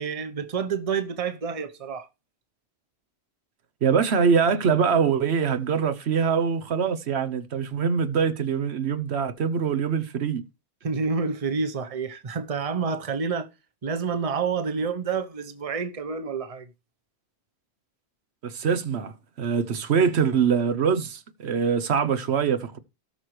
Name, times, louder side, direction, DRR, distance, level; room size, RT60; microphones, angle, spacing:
voice 1, 0.0-2.1 10.8-13.5 13.8-16.7, right 5 dB, 35° right, 0.9 m, -28 dB
voice 2, 3.8-10.4 18.4-19.1 19.4-22.8, right 6 dB, 85° right, 1.1 m, -23 dB
17.5 x 6.2 x 3.2 m
omnidirectional pair, 1.1 m